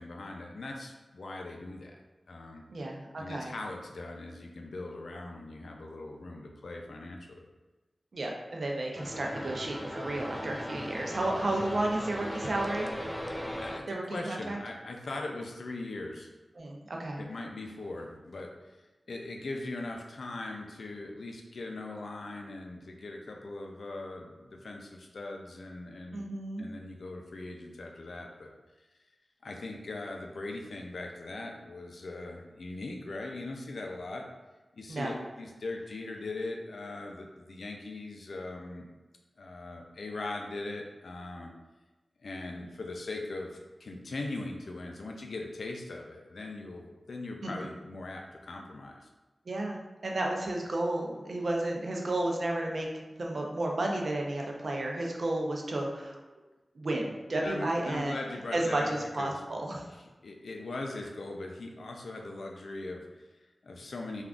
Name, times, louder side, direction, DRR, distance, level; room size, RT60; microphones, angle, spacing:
voice 1, 0.0-2.0 2.3-2.6 3.2-7.5 13.6-16.3 17.2-18.8 19.1-26.3 26.6-28.5 29.4-34.3 34.8-38.9 39.4-41.5 42.2-49.1 57.4-59.5 59.9-64.2, left 2 dB, 80° left, 1 dB, 0.4 m, -40 dB
voice 2, 2.7-3.5 8.1-12.9 13.9-14.6 16.6-17.2 26.1-26.7 34.9-35.2 47.4-47.5 49.5-56.2 56.8-58.2 58.5-59.8, right 1 dB, 70° right, 0 dB, 0.5 m, -32 dB
sound 1, 8.9-13.8, equal, 5° left, 0.4 m, -38 dB
3.5 x 2.4 x 2.4 m, 1.2 s
cardioid pair, 50°, 0 cm